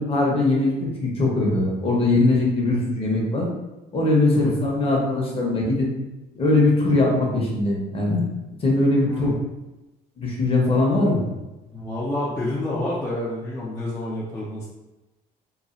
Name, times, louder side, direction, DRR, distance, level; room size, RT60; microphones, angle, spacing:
voice 1, 0.0-3.5 3.9-5.9 6.3-8.2 8.6-9.3 10.2-11.2, left 2 dB, 35° left, -2 dB, 0.8 m, -21 dB
voice 2, 9.1-9.4 11.7-14.6, left 1 dB, 15° left, -7 dB, 0.5 m, -28 dB
3.0 x 2.3 x 2.5 m, 1.0 s
cardioid pair, 110°, 17 cm